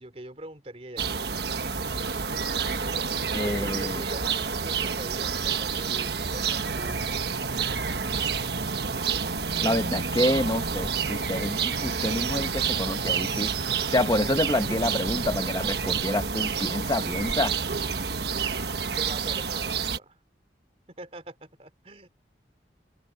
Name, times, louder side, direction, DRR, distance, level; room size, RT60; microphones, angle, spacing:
voice 1, 0.0-1.3 3.4-7.3 19.0-20.2 21.0-22.1, right 1 dB, 35° right, 3.4 m, -42 dB
sound 1, 1.0-20.0, right 6 dB, 65° right, 1.3 m, -29 dB
voice 2, 3.3-4.0 9.6-13.5 13.9-17.5, left 1 dB, 20° left, 1.0 m, -27 dB
sound 2, 6.6-16.2, right 1 dB, 85° right, 4.3 m, -40 dB
open air
head